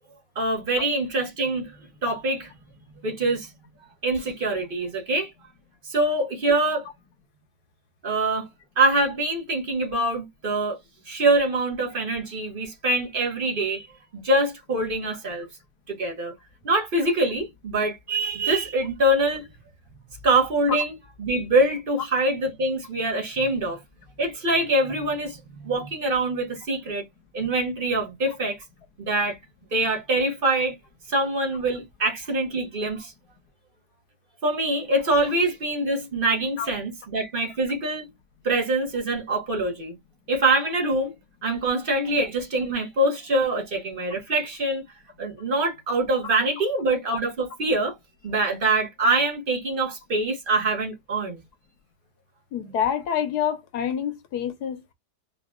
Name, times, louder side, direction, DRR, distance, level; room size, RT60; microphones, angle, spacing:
voice 1, 0.3-1.7 2.0-2.5 3.0-3.5 4.0-5.3 5.9-6.9 8.0-8.5 8.8-10.8 11.1-13.9 14.1-15.5 15.9-16.3 16.6-19.4 20.2-23.8 24.2-27.0 27.3-28.6 29.0-29.4 29.7-30.8 31.1-33.1 34.4-38.1 38.4-39.9 40.3-41.1 41.4-44.8 45.2-47.9 48.2-51.4, right 2 dB, 35° right, 1.2 m, -24 dB
voice 2, 52.5-54.9, left 8 dB, 65° left, 1.2 m, -27 dB
4.3 x 2.8 x 2.3 m
omnidirectional pair, 2.0 m